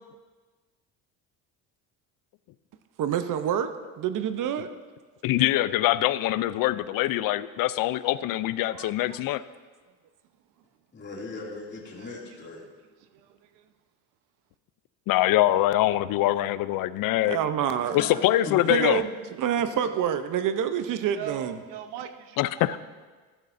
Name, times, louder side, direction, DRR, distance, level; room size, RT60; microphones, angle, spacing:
voice 1, 3.0-3.7 4.0-4.7 8.7-9.2 17.3-18.0 18.7-19.1 19.4-21.6, right 9 dB, 50° right, 0.8 m, -27 dB
voice 2, 5.2-9.4 15.1-17.4 17.9-19.0 22.4-22.8, left 15 dB, 55° left, 0.5 m, -24 dB
voice 3, 10.9-12.7 17.8-19.0 19.7-19.9, left 2 dB, 25° left, 2.6 m, -39 dB
voice 4, 13.0-13.7 21.1-22.4 22.7-22.8, right 10 dB, 80° right, 0.9 m, -40 dB
14.0 x 12.0 x 2.6 m
supercardioid pair, 100°, 40 cm